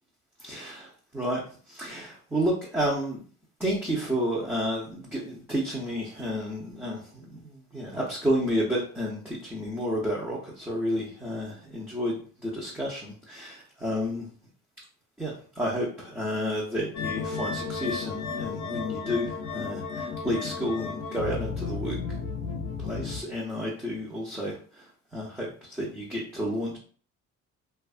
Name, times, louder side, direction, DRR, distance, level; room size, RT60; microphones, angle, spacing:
voice 1, 0.4-1.4 1.7-3.2 3.6-14.3 15.2-22.2 22.8-24.9 25.1-26.8, equal, 5° right, -6 dB, 0.7 m, -31 dB
sound 1, 16.9-23.2, left 5 dB, 65° left, 0.7 m, -33 dB
2.5 x 2.3 x 2.4 m, 0.42 s
cardioid pair, 90°, 30 cm